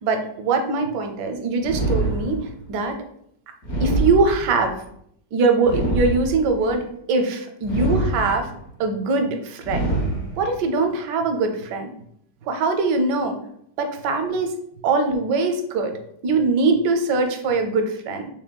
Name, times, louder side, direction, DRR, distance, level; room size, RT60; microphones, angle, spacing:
voice 1, 0.0-3.0 3.8-4.8 5.3-8.5 8.8-9.9 10.4-11.9 12.4-13.4 13.8-14.6 14.8-16.0 16.2-18.3, right 3 dB, 90° right, 6 dB, 1.3 m, -22 dB
sound 1, 1.6-2.7 3.6-4.7 5.6-6.7 7.6-8.7 9.6-10.7, right 2 dB, 45° left, 1.3 m, -25 dB
6.1 x 3.5 x 2.2 m, 0.69 s
omnidirectional pair, 1.8 m